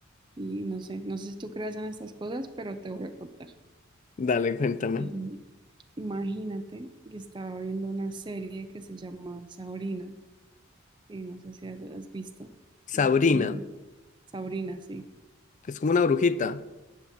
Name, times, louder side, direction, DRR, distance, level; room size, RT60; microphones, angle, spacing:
voice 1, 0.4-3.5 5.0-5.4 6.0-10.1 11.1-12.5 12.9-13.6 14.3-15.0, right 2 dB, 20° right, 0.5 m, -36 dB
voice 2, 4.2-5.1 12.9-13.6 15.7-16.6, left 4 dB, 35° left, 0.4 m, -24 dB
17.5 x 6.0 x 4.3 m
head